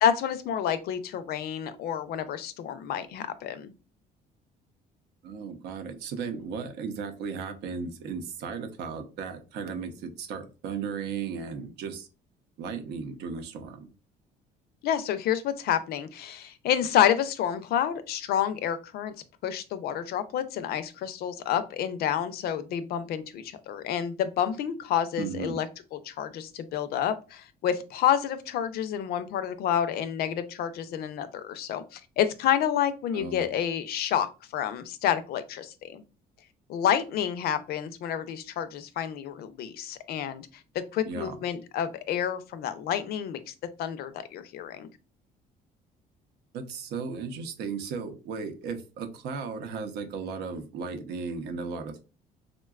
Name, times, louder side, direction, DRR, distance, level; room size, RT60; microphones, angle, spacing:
voice 1, 0.0-3.7 14.8-19.1 19.4-25.7 25.9-36.0 36.7-40.5 40.9-43.5 43.8-44.9, left 9 dB, 65° left, 12 dB, 0.4 m, -29 dB
voice 2, 5.2-12.1 12.6-13.9 25.2-25.6 33.1-33.5 41.1-41.4 46.5-52.0, right 5 dB, 80° right, 6 dB, 0.6 m, -35 dB
3.7 x 2.2 x 2.3 m, 0.32 s
cardioid pair, 110°, 17 cm